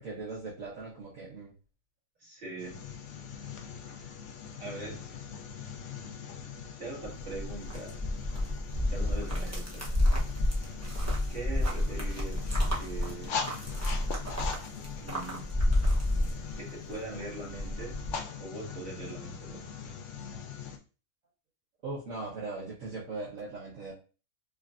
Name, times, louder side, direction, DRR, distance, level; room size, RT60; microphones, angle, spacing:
voice 1, 0.0-1.5 21.8-23.9, right 3 dB, 60° right, -8 dB, 1.5 m, -39 dB
voice 2, 2.2-2.8 4.6-5.0 6.8-8.0 8.9-9.9 11.3-13.4 15.0-15.5 16.6-18.0 18.4-19.6, right 3 dB, 40° right, -5 dB, 2.0 m, -41 dB
sound 1, 2.6-20.8, left 6 dB, 60° left, 0.9 m, -41 dB
sound 2, 7.0-16.9 17.3-18.2, left 1 dB, 15° right, 0.6 m, -30 dB
4.9 x 2.6 x 2.5 m, 0.35 s
omnidirectional pair, 1.6 m